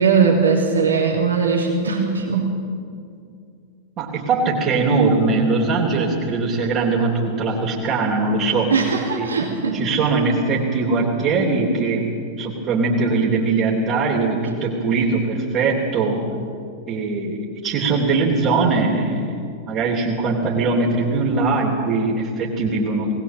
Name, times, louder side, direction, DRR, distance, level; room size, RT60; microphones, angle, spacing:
voice 1, 0.0-2.5 8.7-9.8, right 5 dB, 70° right, 0 dB, 3.1 m, -19 dB
voice 2, 4.0-8.7 9.2-9.4 9.7-16.2 16.9-23.2, right 3 dB, 40° right, -5 dB, 3.4 m, -21 dB
21.5 x 19.5 x 7.7 m, 2.3 s
figure-of-eight pair, 90°, 0 cm